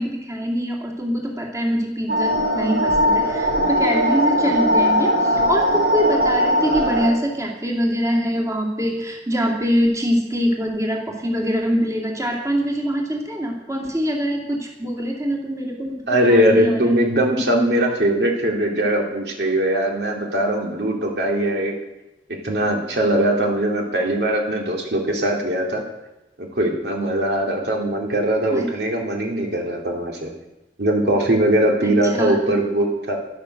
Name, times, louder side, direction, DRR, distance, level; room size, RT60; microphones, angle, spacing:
voice 1, 0.0-16.9 28.5-28.7 31.8-32.4, equal, 20° right, -1 dB, 2.4 m, -24 dB
sound 1, 2.1-7.1, equal, 85° right, 2.0 m, -19 dB
voice 2, 16.1-21.8 22.4-25.8 26.4-30.3 30.8-33.2, right 1 dB, 65° right, 0 dB, 2.5 m, -20 dB
12.5 x 11.5 x 6.6 m, 0.97 s
head